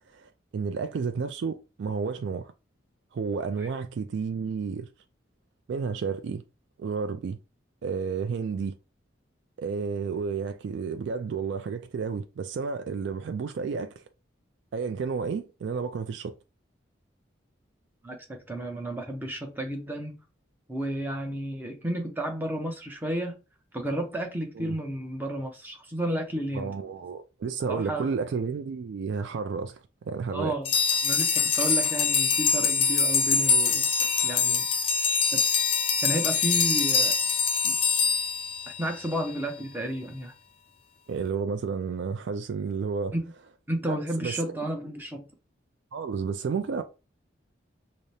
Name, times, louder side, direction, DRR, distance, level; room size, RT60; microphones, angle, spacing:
voice 1, 0.1-2.5 3.1-4.9 5.7-6.4 6.8-7.4 7.8-8.8 9.6-14.0 14.7-16.3 24.6-24.7 26.5-30.6 41.1-43.1 43.9-44.5 45.9-46.8, right 5 dB, 70° right, 0.3 m, -31 dB
voice 2, 18.0-20.2 20.7-23.4 23.7-26.8 27.7-28.1 30.3-30.7 31.0-34.7 35.3-35.4 36.0-37.2 37.6-37.8 38.8-40.3 43.1-43.3 43.7-45.3, right 1 dB, 10° right, 0.6 m, -32 dB
sound 1, 30.6-39.2, left 5 dB, 30° left, 0.3 m, -24 dB
4.9 x 2.0 x 2.7 m
head